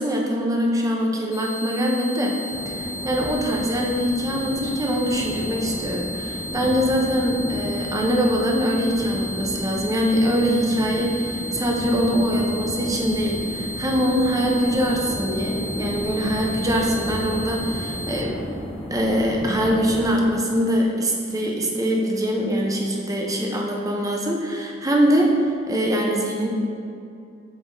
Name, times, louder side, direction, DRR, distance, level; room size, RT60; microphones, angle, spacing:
voice 1, 0.0-18.4 18.9-26.5, equal, 20° right, 0 dB, 0.6 m, -23 dB
sound 1, 1.3-18.2, left 1 dB, 80° left, 0.6 m, -35 dB
sound 2, 2.5-20.1, equal, 35° left, 0.8 m, -32 dB
7.1 x 5.2 x 2.7 m, 2.5 s
head